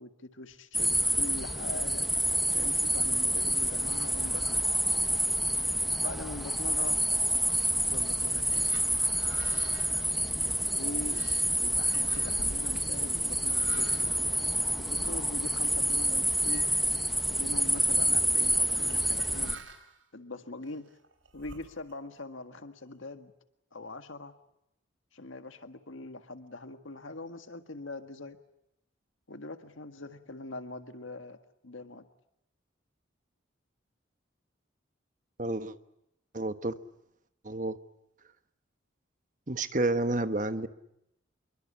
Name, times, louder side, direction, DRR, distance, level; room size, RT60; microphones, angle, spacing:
voice 1, 0.0-2.1 2.5-4.8 6.0-7.0 7.9-8.7 10.7-11.2 11.6-14.5 14.8-16.7 17.3-19.6 20.1-20.9 21.3-23.3 23.7-24.3 25.1-28.4 29.3-31.4 31.6-32.0, left 2 dB, 85° left, 8 dB, 1.8 m, -42 dB
sound 1, 0.7-19.6, equal, ahead, 1.1 m, -28 dB
sound 2, 8.2-15.3 15.8-16.0 16.4-17.0 17.2-17.9 18.5-20.0 20.6-22.2, right 4 dB, 85° right, 4.5 m, -51 dB
voice 2, 35.4-35.7 36.3-36.7 37.4-37.8 39.5-40.7, right 2 dB, 40° right, 10 dB, 1.3 m, -30 dB
27.0 x 23.0 x 8.5 m, 0.82 s
head